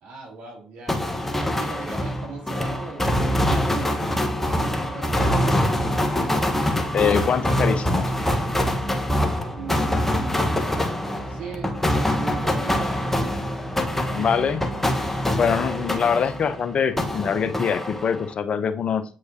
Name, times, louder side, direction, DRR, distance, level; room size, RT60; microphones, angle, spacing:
voice 1, 0.0-5.7 9.5-10.7 11.3-13.2 14.0-14.4, right 4 dB, 65° right, -2 dB, 3.0 m, -38 dB
sound 1, 0.9-16.6 17.0-18.3, left 1 dB, 10° left, 1.2 m, -24 dB
sound 2, 5.3-16.6, right 3 dB, 15° right, 3.6 m, -40 dB
voice 2, 6.9-8.1 14.1-14.6 15.3-19.0, left 7 dB, 50° left, 12 dB, 0.7 m, -23 dB
7.9 x 4.7 x 2.8 m, 0.38 s
hypercardioid pair, 50°, 2 cm